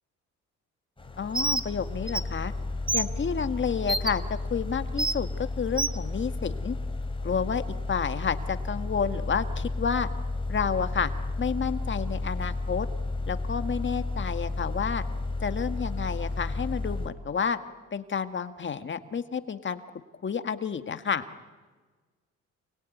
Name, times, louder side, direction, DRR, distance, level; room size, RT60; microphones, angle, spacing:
sound 1, 1.0-17.1, left 2 dB, 15° left, 3.3 m, -32 dB
voice 1, 1.2-2.5 2.9-4.2 4.5-6.8 7.2-7.6 7.9-10.1 10.5-11.1 11.4-12.9 13.3-15.0 15.4-17.6 17.9-19.8 20.2-21.3, left 6 dB, 40° left, 9 dB, 1.8 m, -30 dB
Bird, 1.3-1.7 2.1-2.2 2.9-3.1 3.9-4.1 5.0-5.2 5.8-6.0, right 2 dB, 15° right, 1.2 m, -26 dB
28.5 x 21.0 x 9.4 m, 1.3 s
cardioid pair, 90°, 30 cm